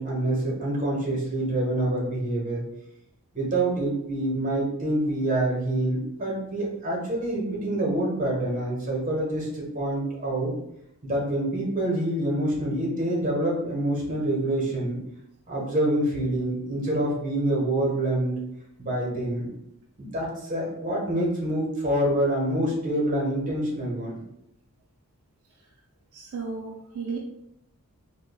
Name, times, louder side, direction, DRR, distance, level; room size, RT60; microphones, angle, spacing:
voice 1, 0.0-2.6 3.3-10.5 11.0-15.0 15.5-18.3 18.8-19.5 20.0-24.2, right 1 dB, 35° right, -3 dB, 1.2 m, -26 dB
voice 2, 26.1-27.2, right 5 dB, 65° right, -2 dB, 0.5 m, -34 dB
4.6 x 2.3 x 2.2 m, 0.79 s
head